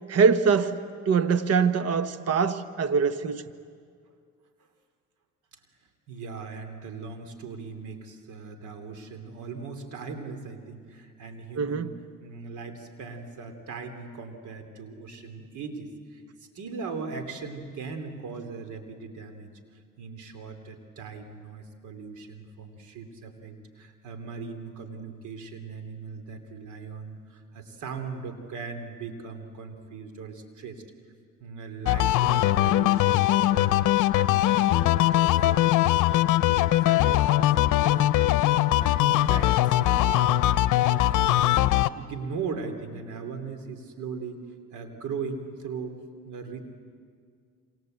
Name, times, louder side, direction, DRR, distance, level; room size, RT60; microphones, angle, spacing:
voice 1, 0.1-0.8 1.1-3.4 11.6-11.9, right 5 dB, 55° right, 1.3 m, -23 dB
voice 2, 6.1-11.9 12.2-16.2 16.5-19.5 20.0-30.8 31.4-33.8 34.1-44.4 44.7-46.0 46.2-46.6, right 5 dB, 80° right, 3.3 m, -39 dB
sound 1, 31.9-41.9, left 14 dB, 85° left, 0.7 m, -21 dB
28.0 x 26.5 x 8.1 m
cardioid pair, 90°, 30 cm